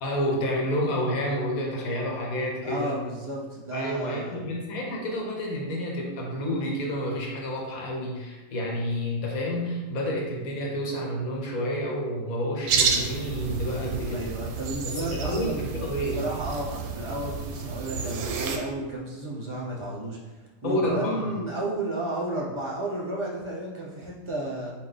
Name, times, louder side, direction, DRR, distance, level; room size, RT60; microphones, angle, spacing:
voice 1, 0.0-3.0 3.7-14.2 14.8-16.2 20.6-21.3, equal, 80° left, -1 dB, 1.2 m, -29 dB
voice 2, 2.6-4.4 10.4-10.5 13.7-15.6 16.1-24.7, right 1 dB, 30° right, -3 dB, 0.5 m, -33 dB
sound 1, 12.7-18.6, right 5 dB, 90° right, 1.1 m, -30 dB
4.5 x 2.3 x 4.0 m, 1.2 s
omnidirectional pair, 1.5 m